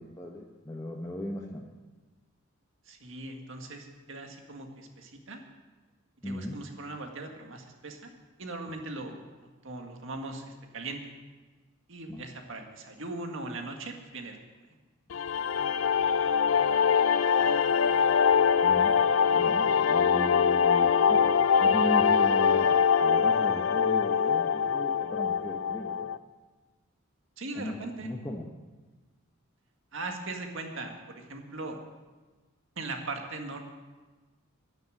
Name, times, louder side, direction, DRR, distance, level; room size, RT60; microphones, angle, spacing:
voice 1, 0.0-1.7 6.2-6.6 12.1-12.2 18.6-18.9 19.3-26.1 27.5-28.5, left 1 dB, 15° left, -1 dB, 1.0 m, -37 dB
voice 2, 2.9-5.4 6.2-8.1 8.4-11.1 11.9-14.4 27.4-28.1 29.9-31.8 32.8-33.6, right 2 dB, 65° right, 3 dB, 1.9 m, -39 dB
sound 1, 15.1-26.2, left 6 dB, 70° left, 0.5 m, -23 dB
11.5 x 11.0 x 7.7 m, 1.3 s
head